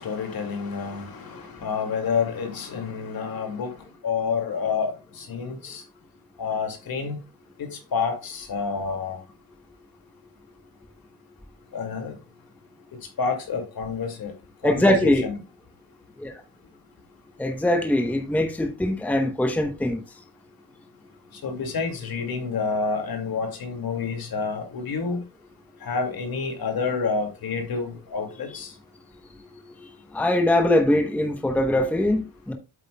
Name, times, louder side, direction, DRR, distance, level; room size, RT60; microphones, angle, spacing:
voice 1, 0.0-3.8 4.0-5.8 6.4-7.2 7.6-9.2 11.7-12.2 13.2-14.3 14.6-15.4 21.4-25.2 25.8-28.7, left 5 dB, 60° left, 2.2 m, -28 dB
voice 2, 14.6-15.3 16.2-16.3 17.4-20.0 30.1-32.5, left 1 dB, 5° left, 0.8 m, -22 dB
8.3 x 8.0 x 2.2 m
wide cardioid pair, 150°, 41 cm